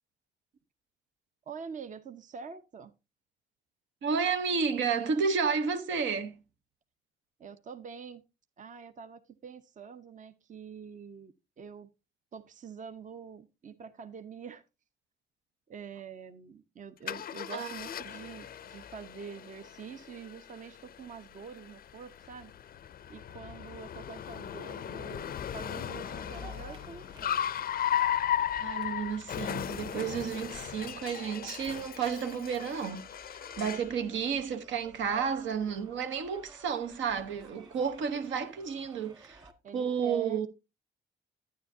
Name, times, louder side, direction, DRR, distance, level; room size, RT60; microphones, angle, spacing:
voice 1, 1.5-2.9 7.4-8.2 8.6-11.9 12.3-14.6 15.7-22.5 23.1-27.4 33.7-33.9 39.6-40.5, right 6 dB, 40° right, 0.7 m, -46 dB
voice 2, 4.0-6.4 17.5-17.7 28.6-33.0 33.3-39.4 39.7-40.5, right 6 dB, 70° right, 1.0 m, -31 dB
Car, 17.1-33.9, left 10 dB, 50° left, 0.4 m, -36 dB
sound 1, 26.0-39.5, right 3 dB, 20° right, 1.8 m, -55 dB
9.6 x 9.5 x 2.7 m
cardioid pair, 90°, 20 cm